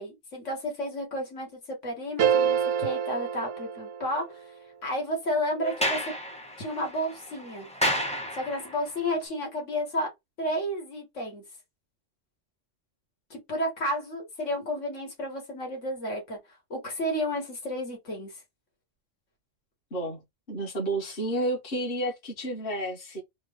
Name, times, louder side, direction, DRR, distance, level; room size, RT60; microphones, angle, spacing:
voice 1, 0.0-1.5 1.8-4.2 4.8-6.0 6.6-7.7 8.3-10.1 10.4-11.4 13.3-16.4 16.7-18.3, equal, 80° left, 1.9 m, -31 dB
sound 1, 2.2-4.4, right 8 dB, 85° right, 1.0 m, -27 dB
Sliding door, 5.6-8.9, equal, 5° left, 0.6 m, -31 dB
voice 2, 19.9-23.2, right 1 dB, 50° left, 1.5 m, -31 dB
3.7 x 2.1 x 3.4 m
omnidirectional pair, 1.3 m